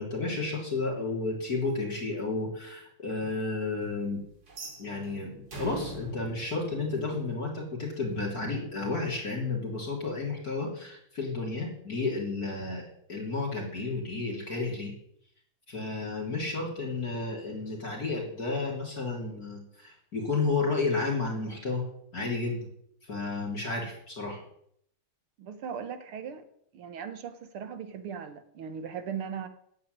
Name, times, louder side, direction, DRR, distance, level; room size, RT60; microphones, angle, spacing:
voice 1, 0.0-4.2 4.8-14.9 15.7-21.8 22.1-22.7 23.1-24.4, left 3 dB, 45° left, 3.9 m, -32 dB
sound 1, 4.5-7.6, right 1 dB, 45° right, 3.3 m, -42 dB
voice 2, 25.4-26.5 26.7-29.5, right 7 dB, 90° right, 2.2 m, -38 dB
13.5 x 8.3 x 9.6 m
omnidirectional pair, 2.3 m